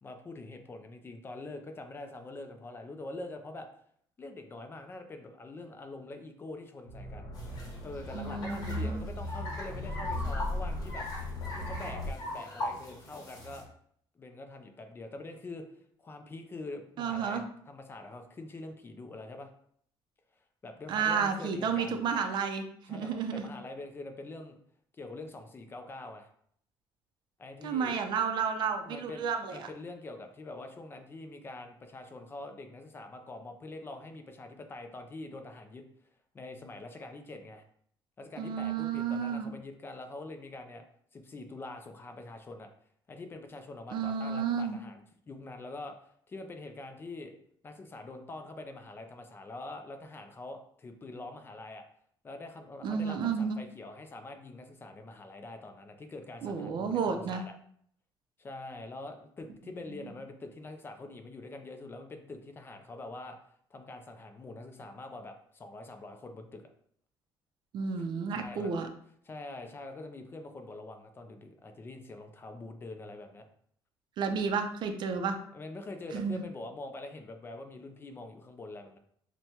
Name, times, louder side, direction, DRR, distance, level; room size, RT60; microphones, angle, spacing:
voice 1, 0.0-3.7 4.2-7.3 7.8-11.1 11.6-13.7 14.1-15.6 16.0-19.5 20.6-22.0 22.9-24.6 25.0-26.3 27.4-28.0 28.8-29.3 29.5-35.8 36.3-37.6 38.2-40.8 41.1-42.7 43.1-46.0 46.3-47.3 47.6-51.8 52.2-57.6 58.4-63.4 63.7-66.7 68.0-68.7 69.2-73.5 75.5-79.0, left 2 dB, 25° left, 6 dB, 0.4 m, -44 dB
sound 1, 6.9-12.1, left 1 dB, 65° left, 1.2 m, -37 dB
sound 2, 7.3-13.6, left 1 dB, 45° left, 1.4 m, -41 dB
voice 2, 8.1-9.1 17.0-17.4 20.9-23.5 27.6-29.7 38.4-39.5 43.9-44.8 52.8-53.6 56.4-57.4 67.7-68.9 74.2-75.4 76.1-76.4, right 6 dB, 60° right, 6 dB, 0.5 m, -31 dB
6.0 x 2.2 x 2.8 m, 0.65 s
cardioid pair, 130°, 9 cm